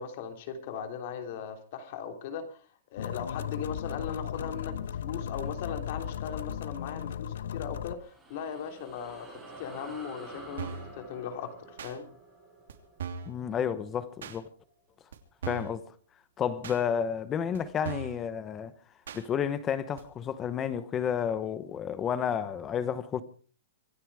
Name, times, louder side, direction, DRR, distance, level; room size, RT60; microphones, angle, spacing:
voice 1, 0.0-2.6 2.9-12.1, left 7 dB, 40° left, 3.2 m, -38 dB
sound 1, 3.0-7.9, left 9 dB, 70° left, 1.1 m, -36 dB
sound 2, 7.8-14.6, right 2 dB, 5° right, 5.8 m, -49 dB
sound 3, 10.6-10.9 11.8-11.9 12.7-12.8 13.0-13.3 14.2-14.4 15.1-15.2 15.4-15.8 16.6-16.8 17.5-17.6 17.8-18.2 19.1-19.2 20.0-20.1, right 6 dB, 75° right, 3.0 m, -38 dB
voice 2, 13.3-14.4 15.5-15.9 16.4-18.7 19.1-23.2, left 8 dB, 15° left, 0.9 m, -31 dB
25.5 x 10.0 x 4.9 m
hypercardioid pair, 170°, 0 cm